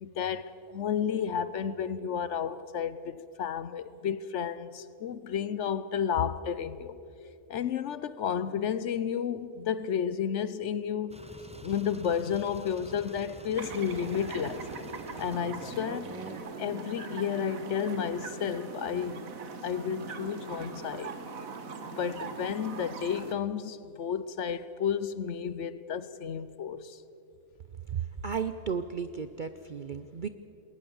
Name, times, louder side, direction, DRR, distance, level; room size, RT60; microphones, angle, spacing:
voice 1, 0.0-7.0 7.5-11.2 11.6-14.6 15.2-16.2 16.6-19.3 19.6-21.1 22.0-27.0, left 8 dB, 65° left, 0.9 m, -32 dB
sound 1, 11.1-16.4, equal, 5° right, 0.8 m, -47 dB
sound 2, 13.6-23.3, right 4 dB, 75° right, 1.8 m, -41 dB
voice 2, 27.9-30.3, right 6 dB, 55° right, 0.6 m, -34 dB
20.5 x 19.0 x 7.1 m
omnidirectional pair, 1.5 m